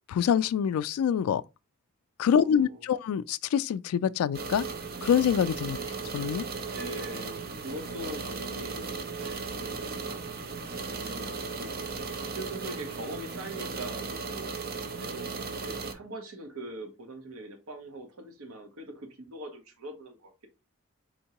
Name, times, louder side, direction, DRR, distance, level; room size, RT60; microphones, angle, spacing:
voice 1, 0.1-1.4 2.2-4.7 5.0-5.8 6.1-6.4, left 8 dB, 90° left, 0.3 m, -25 dB
voice 2, 2.3-3.0 5.8-5.9 6.7-10.2 11.0-11.7 12.2-14.5 15.0-15.3 15.6-20.5, right 1 dB, 85° right, 1.0 m, -42 dB
sound 1, 4.3-15.9, right 4 dB, 45° right, 0.6 m, -36 dB
4.5 x 3.5 x 2.9 m
head